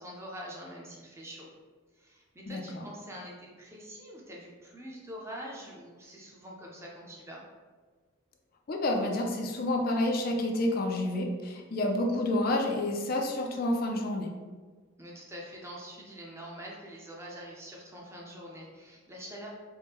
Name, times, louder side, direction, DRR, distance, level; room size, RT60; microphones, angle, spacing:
voice 1, 0.0-1.5 2.0-7.5 15.0-19.5, equal, 15° right, -3 dB, 0.6 m, -45 dB
voice 2, 2.5-2.8 8.7-14.3, left 1 dB, 45° left, 2 dB, 0.4 m, -29 dB
4.3 x 2.1 x 3.4 m, 1.4 s
head